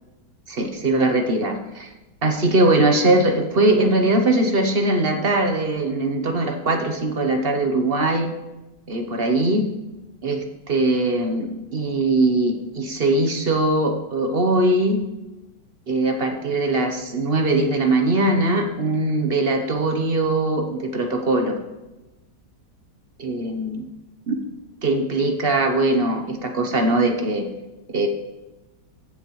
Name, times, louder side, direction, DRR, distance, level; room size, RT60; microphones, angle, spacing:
voice 1, 0.5-1.9 2.2-8.3 8.9-9.6 10.2-15.0 15.9-21.6 23.2-23.8 24.3-24.4 24.8-27.5 27.9-28.1, right 2 dB, 40° right, 4 dB, 1.0 m, -21 dB
14.5 x 7.3 x 3.2 m, 1.0 s
omnidirectional pair, 1.9 m